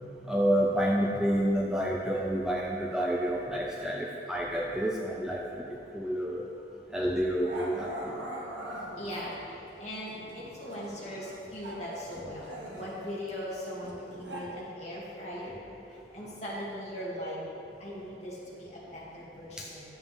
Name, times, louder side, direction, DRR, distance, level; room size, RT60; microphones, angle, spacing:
voice 1, 0.3-5.7 5.9-6.4 6.9-8.2 19.6-19.7, equal, 5° right, -2 dB, 0.4 m, -29 dB
Growling, 6.5-6.7 7.4-9.5 10.1-11.9 12.1-14.4, right 1 dB, 80° right, 1.3 m, -42 dB
voice 2, 9.0-15.6 16.1-17.4 17.8-19.8, equal, 35° left, -7 dB, 2.1 m, -39 dB
11.0 x 7.2 x 3.4 m, 2.8 s
head